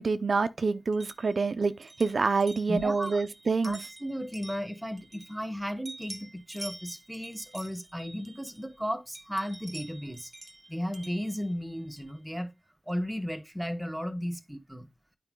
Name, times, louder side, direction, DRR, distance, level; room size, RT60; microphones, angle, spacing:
voice 1, 0.0-3.8, right 4 dB, 70° right, 0.5 m, -27 dB
sound 1, 0.9-5.6 5.8-8.8 9.1-12.2, right 2 dB, 30° right, 1.0 m, -48 dB
voice 2, 2.7-3.2 3.6-10.3 10.7-12.5 12.9-14.9, equal, 5° right, 1.3 m, -35 dB
9.1 x 5.0 x 3.6 m
wide cardioid pair, 75°, 0 cm